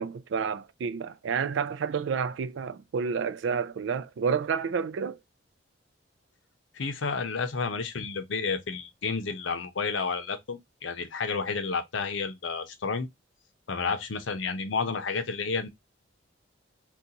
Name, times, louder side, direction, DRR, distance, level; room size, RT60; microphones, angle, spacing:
voice 1, 0.0-5.2, right 6 dB, 70° right, 0.3 m, -30 dB
voice 2, 6.7-13.1 13.7-15.7, left 4 dB, 80° left, 0.7 m, -31 dB
3.8 x 2.3 x 2.7 m
head